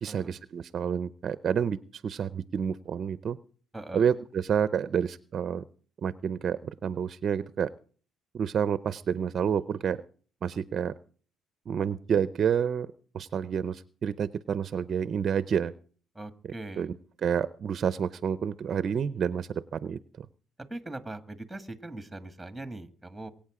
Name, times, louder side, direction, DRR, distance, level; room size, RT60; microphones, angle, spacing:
voice 1, 0.0-3.4 3.9-5.6 6.0-7.7 8.3-10.0 10.4-10.9 11.7-12.9 13.1-15.7 16.8-16.9 17.2-20.3, right 7 dB, 45° right, 15 dB, 0.6 m, -29 dB
voice 2, 3.7-4.0 16.1-16.9 20.7-23.3, right 2 dB, 5° right, 10 dB, 1.5 m, -41 dB
23.5 x 8.7 x 4.9 m, 0.43 s
cardioid pair, 130°, 0 cm